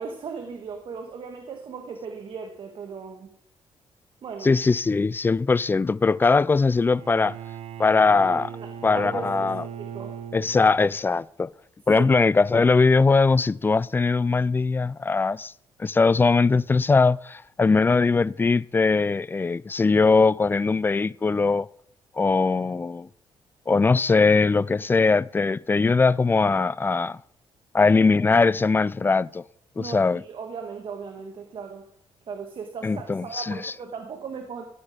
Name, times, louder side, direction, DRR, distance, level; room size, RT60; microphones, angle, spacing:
voice 1, 0.0-3.3 4.2-4.5 8.5-9.5 9.8-10.2 11.9-12.1 29.7-31.9 32.3-34.6, right 5 dB, 60° right, 1.5 m, -37 dB
voice 2, 4.4-7.4 7.8-8.5 8.8-9.6 10.3-11.5 11.9-15.5 15.8-21.7 22.2-23.1 23.7-27.2 27.7-29.4 29.8-30.2 32.8-33.7, left 4 dB, 20° left, 0.3 m, -21 dB
Bowed string instrument, 6.9-11.0, right 8 dB, 75° right, 0.8 m, -39 dB
15.5 x 7.7 x 5.0 m
cardioid pair, 90°, 10 cm